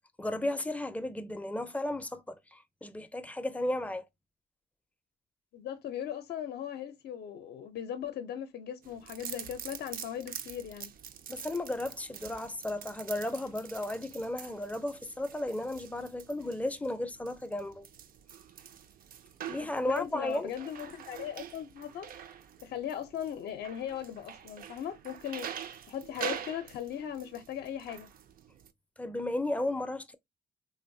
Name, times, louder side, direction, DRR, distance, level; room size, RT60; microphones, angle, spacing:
voice 1, 0.2-4.0 11.3-17.9 19.5-20.5 29.0-30.1, left 1 dB, 10° left, 0.4 m, -34 dB
voice 2, 5.5-10.9 19.8-22.1 22.6-25.5 25.9-28.1, left 9 dB, 70° left, 0.5 m, -38 dB
sound 1, 8.8-28.7, right 9 dB, 60° right, 0.4 m, -45 dB
3.0 x 2.0 x 2.6 m
cardioid pair, 85°, 17 cm